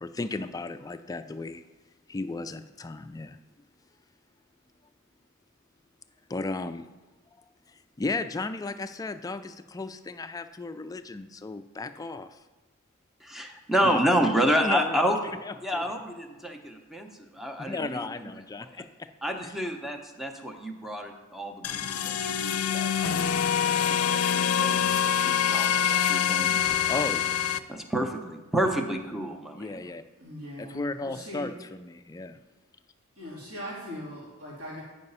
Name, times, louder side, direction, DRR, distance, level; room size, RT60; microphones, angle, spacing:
voice 1, 0.0-1.6 2.1-3.4 6.3-6.9 7.7-12.4 13.8-14.1 14.6-15.1 15.4-15.8 17.6-19.1 19.4-19.6 26.9-27.6 29.5-30.0 30.6-32.4, left 3 dB, 15° left, 9 dB, 0.3 m, -35 dB
voice 2, 13.2-15.2 15.6-17.1 17.3-18.3 18.8-18.9 19.2-26.7 27.7-29.8, equal, ahead, 3 dB, 0.7 m, -29 dB
sound 1, 21.6-27.6, left 8 dB, 85° left, 0.5 m, -25 dB
voice 3, 30.2-31.5 33.2-34.8, equal, 80° right, -7 dB, 2.8 m, -40 dB
9.5 x 4.8 x 5.4 m, 1.2 s
head